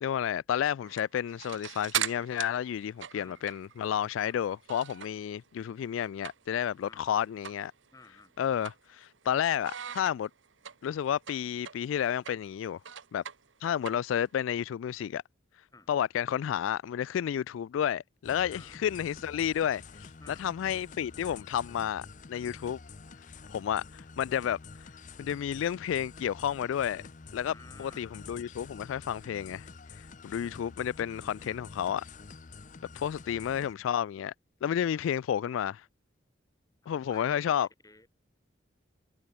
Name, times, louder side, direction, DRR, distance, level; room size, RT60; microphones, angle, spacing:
voice 1, 0.0-7.7 8.4-10.3 10.8-12.8 13.1-13.2 13.6-15.2 15.9-22.8 23.5-24.6 25.2-27.0 27.3-27.5 27.8-29.7 29.9-32.0 32.9-34.3 34.6-35.8 36.9-37.7, left 9 dB, 90° left, 0.3 m, -31 dB
sound 1, 0.8-5.3 5.6-6.7 7.0-7.1 7.4-7.7 8.0-9.3 9.6-14.4, right 10 dB, 80° right, 1.2 m, -39 dB
voice 2, 3.1-3.4 6.8-7.1 7.9-8.3 15.7-15.9 18.5-18.8 20.2-20.4 27.4-28.0 34.9-35.0 36.8-38.1, left 3 dB, 20° left, 2.8 m, -54 dB
sound 2, 18.2-33.7, left 4 dB, 40° left, 0.6 m, -48 dB
head